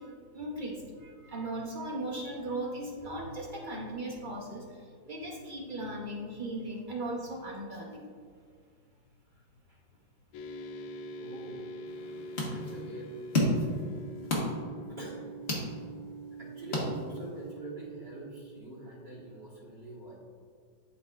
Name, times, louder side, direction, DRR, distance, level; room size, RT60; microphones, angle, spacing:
voice 1, 0.0-8.1, right 1 dB, 65° right, -2 dB, 0.4 m, -38 dB
sound 1, 10.3-18.6, right 1 dB, 85° left, 1.3 m, -44 dB
voice 2, 11.2-11.6 12.5-13.1 15.0-15.3 15.6-15.8 16.4-20.1, right 2 dB, 35° right, -7 dB, 1.5 m, -44 dB
sound 2, 11.9-17.5, left 1 dB, 40° left, 1.4 m, -34 dB
12.0 x 4.1 x 2.4 m, 2.1 s
omnidirectional pair, 2.1 m